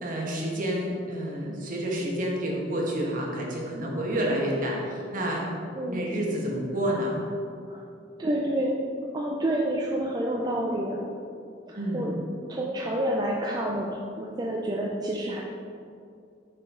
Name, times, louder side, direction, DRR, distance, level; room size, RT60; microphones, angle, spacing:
voice 1, 0.0-5.5 5.9-7.1 11.7-12.0, equal, 50° right, -2 dB, 1.1 m, -29 dB
voice 2, 5.7-6.1 7.7-7.8 8.2-8.8 9.1-11.1 11.7-12.1 12.5-15.4, right 1 dB, 25° right, -2 dB, 0.4 m, -29 dB
5.6 x 5.0 x 3.7 m, 2.4 s
head